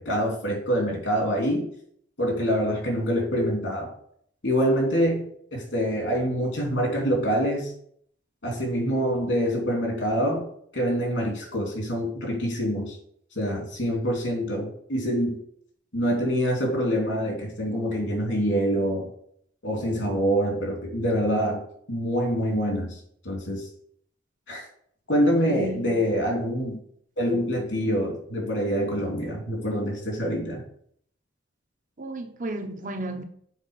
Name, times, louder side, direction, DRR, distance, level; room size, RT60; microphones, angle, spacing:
voice 1, 0.0-1.7 2.2-3.9 4.4-7.7 8.4-13.0 13.3-15.4 15.9-19.1 19.6-21.6 21.9-23.0 23.2-23.7 24.5-24.6 25.1-26.7 27.2-30.6, equal, 90° left, 3.3 m, -25 dB
voice 2, 25.5-26.2 32.0-33.2, right 1 dB, 45° right, 1.0 m, -34 dB
7.2 x 4.2 x 5.7 m
head